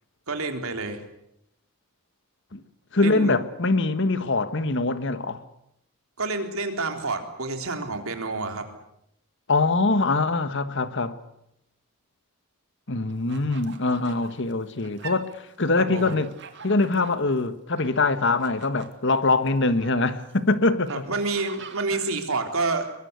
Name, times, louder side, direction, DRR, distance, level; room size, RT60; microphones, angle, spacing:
voice 1, 0.3-1.0 3.0-3.4 6.2-8.7 15.8-16.1 20.9-22.9, right 3 dB, 75° right, 3.7 m, -28 dB
voice 2, 2.9-5.4 9.5-11.2 12.9-16.3 16.6-21.0, left 3 dB, 55° left, 1.4 m, -23 dB
sound 1, 13.1-15.6 16.0-17.4 17.8-20.4 20.9-21.8, right 6 dB, 55° right, 2.5 m, -45 dB
23.0 x 22.0 x 8.2 m
head